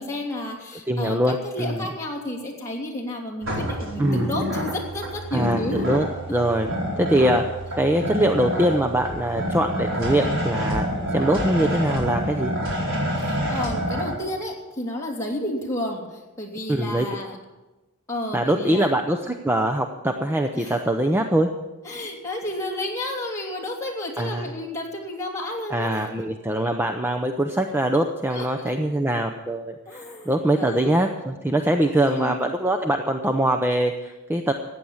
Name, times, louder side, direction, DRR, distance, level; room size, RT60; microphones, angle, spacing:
voice 1, 0.0-5.8 13.2-17.4 18.1-18.9 20.5-20.8 21.8-26.1 28.3-28.7 29.9-30.9 32.0-32.4, left 1 dB, 15° left, -2 dB, 2.8 m, -31 dB
voice 2, 0.9-1.8 4.0-4.3 5.3-6.7 7.0-7.4 7.7-10.9 11.1-12.5 16.7-17.1 18.3-21.5 24.2-24.5 25.7-34.5, right 1 dB, 10° right, 5 dB, 0.6 m, -23 dB
sound 1, 3.4-14.1, equal, 60° right, 4.5 m, -27 dB
15.0 x 9.5 x 7.2 m, 1.1 s
head